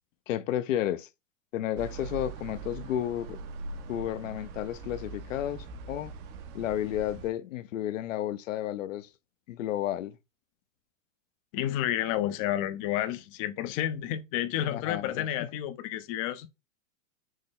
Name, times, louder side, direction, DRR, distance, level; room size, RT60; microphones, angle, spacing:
voice 1, 0.3-1.1 1.5-3.4 3.9-6.1 6.5-9.1 9.5-10.2 14.6-15.5, left 12 dB, 75° left, 0.6 m, -32 dB
sound 1, 1.8-7.3, right 4 dB, 30° right, 0.5 m, -42 dB
voice 2, 11.5-16.5, left 12 dB, 30° left, 0.4 m, -30 dB
6.3 x 2.2 x 3.6 m
hypercardioid pair, 140°, 39 cm